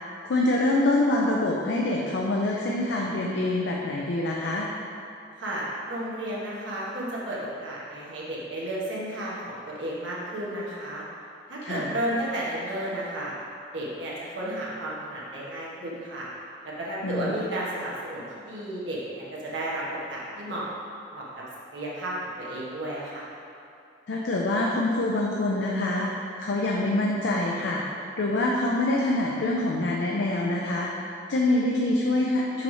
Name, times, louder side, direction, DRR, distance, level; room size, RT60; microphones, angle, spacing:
voice 1, 0.2-4.7 11.6-11.9 17.0-17.4 24.1-26.1 26.4-27.8 28.2-32.6, left 2 dB, 70° left, -2 dB, 0.5 m, -25 dB
voice 2, 5.4-11.0 11.5-13.3 13.7-16.3 16.6-20.7 21.1-21.3 21.7-23.2, right 1 dB, 85° right, -6 dB, 1.3 m, -33 dB
5.7 x 3.1 x 5.4 m, 2.6 s
head